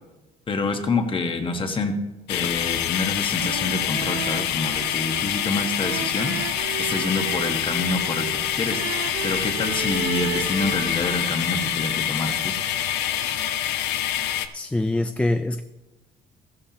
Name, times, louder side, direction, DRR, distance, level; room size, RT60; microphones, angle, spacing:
voice 1, 0.5-2.0 2.3-6.4 6.8-8.8 9.2-12.6, left 3 dB, 30° left, 6 dB, 1.3 m, -27 dB
sound 1, 2.3-14.5, left 11 dB, 90° left, 0.6 m, -26 dB
sound 2, 3.2-13.8, right 11 dB, 90° right, 0.6 m, -35 dB
voice 2, 14.5-15.6, left 2 dB, 5° left, 8 dB, 0.3 m, -24 dB
14.0 x 13.0 x 2.9 m, 1.1 s
cardioid pair, 110°, 17 cm